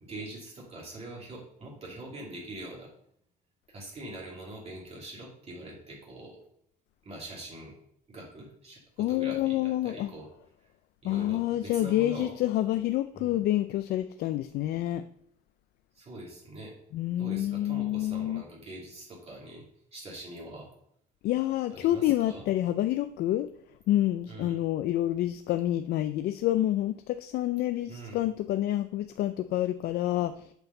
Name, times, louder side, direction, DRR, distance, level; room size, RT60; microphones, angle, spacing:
voice 1, 0.0-2.9 3.7-6.4 7.0-7.7 8.1-10.3 11.0-12.3 13.1-13.4 15.9-16.8 17.2-19.6 19.9-20.7 21.7-22.5 24.3-24.6 27.9-28.2, right 1 dB, 40° right, -3 dB, 2.6 m, -43 dB
voice 2, 9.0-10.1 11.0-15.0 16.9-18.4 21.2-23.5 23.9-30.5, left 13 dB, 70° left, 10 dB, 0.4 m, -28 dB
8.0 x 4.6 x 5.4 m, 0.68 s
cardioid pair, 110°, 17 cm